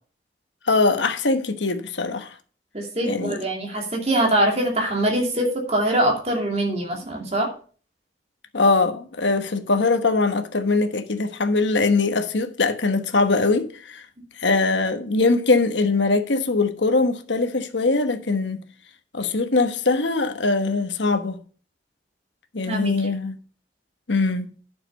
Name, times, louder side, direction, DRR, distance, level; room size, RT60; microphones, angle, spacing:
voice 1, 0.7-2.3 3.0-3.5 8.5-14.0 14.4-18.6 19.1-21.4 22.5-23.4 24.1-24.5, left 3 dB, 85° left, 1.2 m, -22 dB
voice 2, 2.7-7.5 22.7-22.9, right 1 dB, 35° right, 2.7 m, -23 dB
9.3 x 6.9 x 5.4 m
head